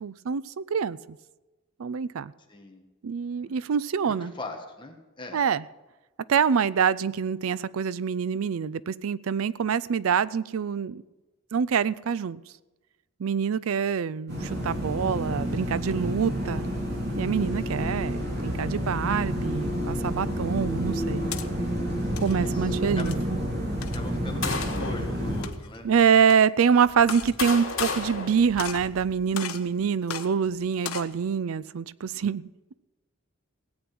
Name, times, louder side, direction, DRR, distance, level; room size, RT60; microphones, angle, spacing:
voice 1, 0.0-1.0 1.8-2.3 3.0-4.3 5.3-5.6 6.3-11.0 11.5-12.4 13.2-16.7 17.2-21.3 22.2-23.1 25.8-32.5, right 7 dB, 75° right, 19 dB, 0.4 m, -25 dB
voice 2, 2.5-2.8 3.4-3.5 4.0-5.4 22.2-23.1 23.9-25.9, left 2 dB, 20° left, 2 dB, 1.5 m, -40 dB
sound 1, 14.3-25.4, equal, 50° right, 3.2 m, -29 dB
sound 2, 21.2-21.5 22.0-22.3 23.0-23.3 23.8-24.1 24.6-24.7 25.3-25.8 26.3-26.4 27.0-27.4 27.7-28.3 28.6-28.9 29.3-29.7 30.1-30.3 30.7-31.1, left 8 dB, 90° left, 0.9 m, -36 dB
sound 3, 23.9-25.1 25.8-26.0 26.9-29.2, left 4 dB, 65° left, 3.0 m, -33 dB
17.0 x 8.8 x 6.0 m, 1.1 s
head